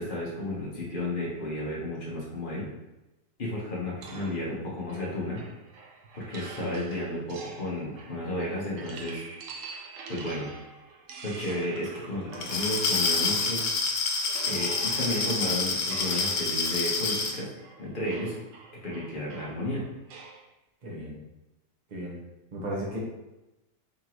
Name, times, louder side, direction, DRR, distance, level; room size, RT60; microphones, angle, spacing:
voice 1, 0.0-2.7 3.4-5.4 6.1-9.2 10.1-10.5 11.2-13.6 14.5-17.5 17.8-18.4 18.8-19.8, left 1 dB, 35° left, -5 dB, 1.0 m, -32 dB
sound 1, 4.0-13.8 14.2-20.5, right 4 dB, 65° right, 0.8 m, -45 dB
Glass, 12.3-17.4, left 4 dB, 80° left, 0.5 m, -27 dB
voice 2, 20.8-21.2 21.9-22.2 22.5-23.0, right 1 dB, 35° right, -3 dB, 0.9 m, -35 dB
3.9 x 3.7 x 3.0 m, 0.99 s
omnidirectional pair, 1.8 m